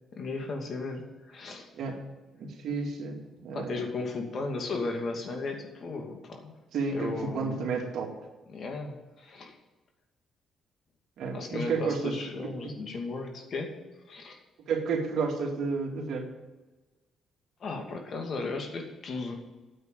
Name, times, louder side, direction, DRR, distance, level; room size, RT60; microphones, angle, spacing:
voice 1, 0.2-1.7 3.5-6.5 6.9-7.7 8.5-9.5 11.3-13.7 14.1-14.4 17.6-19.3, left 3 dB, 55° left, 3 dB, 2.5 m, -35 dB
voice 2, 2.4-3.8 6.7-8.1 11.2-12.5 14.7-16.3, right 4 dB, 75° right, 1 dB, 2.3 m, -31 dB
9.4 x 8.1 x 9.1 m, 1.2 s
cardioid pair, 90°, 0 cm